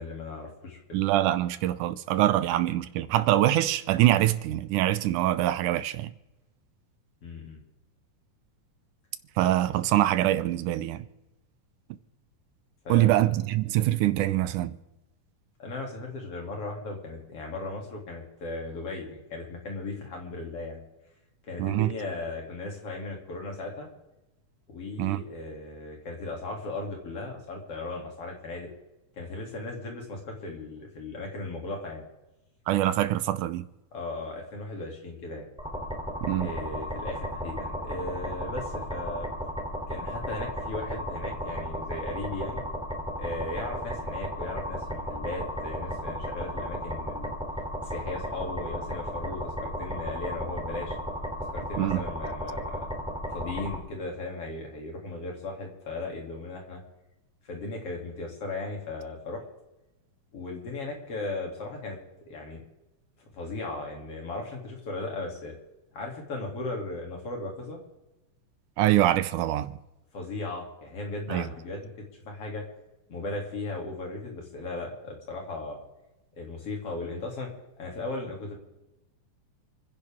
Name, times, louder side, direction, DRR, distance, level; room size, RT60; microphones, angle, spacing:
voice 1, 0.0-1.0 7.2-7.6 12.9-13.3 15.6-20.8 21.5-23.9 24.7-28.7 29.2-32.1 33.9-35.5 36.4-39.3 39.9-42.6 43.2-47.4 47.8-51.0 51.4-53.0 53.3-56.8 57.4-59.4 60.3-62.0 62.3-62.6 63.3-65.5 65.9-67.8 70.1-72.6 73.1-75.8 76.4-77.5 77.8-78.6, left 2 dB, 50° left, 3.7 m, -37 dB
voice 2, 0.9-6.1 9.4-11.0 12.9-14.7 21.6-21.9 25.0-25.2 32.7-33.7 36.2-36.5 51.8-52.0 68.8-69.8 71.3-71.5, right 14 dB, 80° right, 2.2 m, -24 dB
sound 1, 35.6-53.8, equal, ahead, 2.7 m, -34 dB
29.0 x 10.5 x 3.6 m
omnidirectional pair, 3.6 m